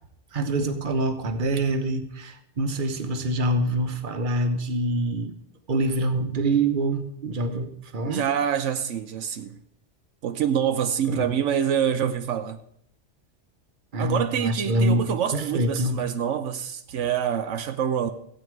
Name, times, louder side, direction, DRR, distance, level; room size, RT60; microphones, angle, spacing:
voice 1, 0.3-5.3 5.7-8.2 11.1-11.2 13.9-15.0 15.3-16.0, right 1 dB, 45° right, 1.1 m, -25 dB
voice 2, 8.0-9.6 10.2-12.6 14.0-18.1, right 8 dB, 85° right, 1.0 m, -26 dB
15.0 x 9.1 x 4.6 m
omnidirectional pair, 1.2 m